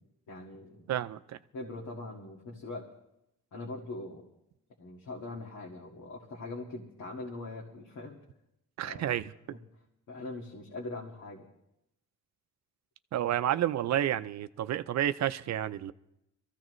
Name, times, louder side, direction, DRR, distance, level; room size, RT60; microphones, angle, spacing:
voice 1, 0.3-0.8 1.5-2.9 3.5-4.3 4.8-8.2 8.8-9.2 9.5-9.6 10.1-11.5, left 2 dB, 75° left, -2 dB, 2.1 m, -42 dB
voice 2, 0.9-1.4 8.8-9.3 13.1-15.9, right 11 dB, 60° right, 13 dB, 0.6 m, -30 dB
23.0 x 14.5 x 3.2 m, 0.83 s
cardioid pair, 90°, 30 cm